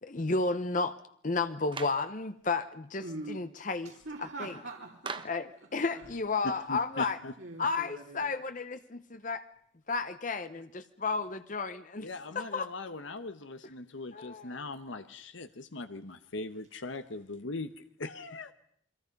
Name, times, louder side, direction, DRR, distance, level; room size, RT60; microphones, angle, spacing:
voice 1, 0.0-1.0 1.2-3.9 4.2-4.5 5.2-7.2 7.6-9.4 9.9-12.1 12.3-12.7 14.1-14.7, left 3 dB, 40° left, 11 dB, 0.8 m, -32 dB
Clapping, 1.7-2.1 5.0-5.5, right 4 dB, 25° right, 1.1 m, -39 dB
voice 2, 3.0-3.5 3.8-5.3 5.9-6.1 6.3-6.5 7.4-8.3, right 2 dB, 70° right, -1 dB, 2.9 m, -43 dB
voice 3, 6.7-7.3 12.0-18.5, left 2 dB, 75° left, 10 dB, 1.1 m, -40 dB
29.5 x 23.0 x 5.3 m, 0.66 s
head